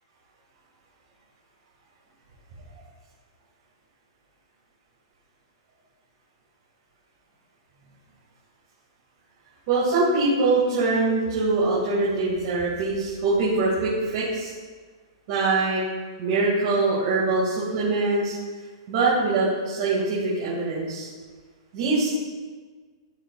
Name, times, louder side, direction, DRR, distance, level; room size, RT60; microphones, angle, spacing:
voice 1, 9.7-14.5 15.3-15.8 16.2-18.3 18.9-21.1 21.7-22.1, right 3 dB, 40° right, -8 dB, 2.1 m, -23 dB
12.5 x 4.7 x 2.4 m, 1.5 s
hypercardioid pair, 160°, 3 cm